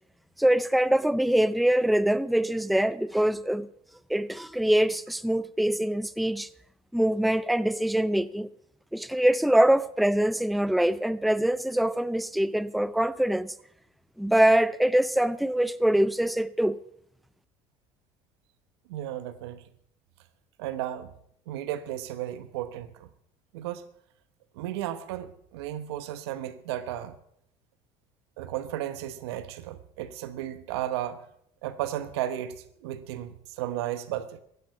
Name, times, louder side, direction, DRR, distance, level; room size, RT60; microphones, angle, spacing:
voice 1, 0.4-3.7 4.1-6.5 6.9-8.5 8.9-13.5 14.2-16.8, right 1 dB, ahead, 0.5 m, -24 dB
voice 2, 18.9-19.6 20.6-21.1 21.5-23.1 23.5-23.8 24.6-27.2 28.4-31.3 31.6-32.5 32.8-34.4, right 12 dB, 90° right, 1.0 m, -34 dB
15.5 x 10.5 x 5.7 m
supercardioid pair, 85°, 13 cm